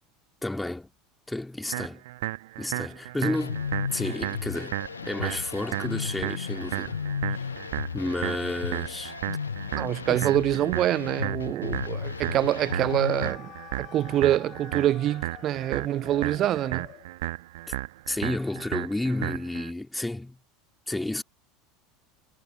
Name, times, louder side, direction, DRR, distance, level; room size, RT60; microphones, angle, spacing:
voice 1, 0.4-0.9 1.3-2.0 2.6-3.6 3.9-4.8 5.0-7.0 7.3-7.4 7.9-9.2 10.1-10.3 17.7-17.8 18.1-20.4 20.9-21.2, left 2 dB, 5° left, 3.4 m, -31 dB
sound 1, 1.7-19.7, right 18 dB, 65° right, 1.3 m, -34 dB
sound 2, 3.3-13.3, left 6 dB, 80° left, 0.5 m, -34 dB
voice 2, 9.7-13.5 13.8-16.9, right 12 dB, 40° right, 0.5 m, -25 dB
sound 3, 12.3-17.1, left 14 dB, 45° left, 1.4 m, -46 dB
figure-of-eight pair, 75°, 0 cm